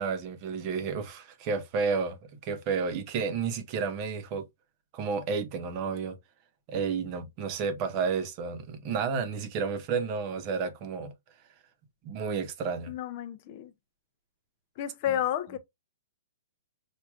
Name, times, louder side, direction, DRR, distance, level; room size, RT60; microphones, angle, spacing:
voice 1, 0.0-2.2 2.4-4.5 4.9-6.2 6.7-11.1 12.0-12.9, right 5 dB, 35° right, 0.9 m, -31 dB
voice 2, 12.9-13.7 14.8-15.6, left 11 dB, 45° left, 0.6 m, -31 dB
4.7 x 2.5 x 2.3 m
hypercardioid pair, 140°, 0 cm